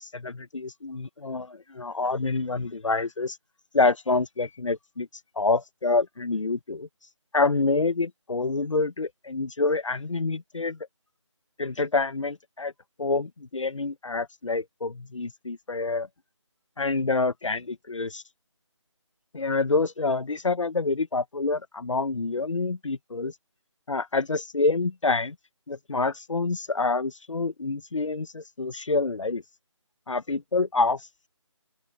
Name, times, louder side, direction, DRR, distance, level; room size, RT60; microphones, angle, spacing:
voice 1, 0.0-3.4 3.7-5.1 5.3-6.9 7.3-10.8 11.6-12.7 13.0-16.1 16.8-18.2 19.3-23.3 23.9-25.3 25.7-29.4 30.1-31.1, left 3 dB, 75° left, 1.3 m, -27 dB
open air
figure-of-eight pair, 170°, 16 cm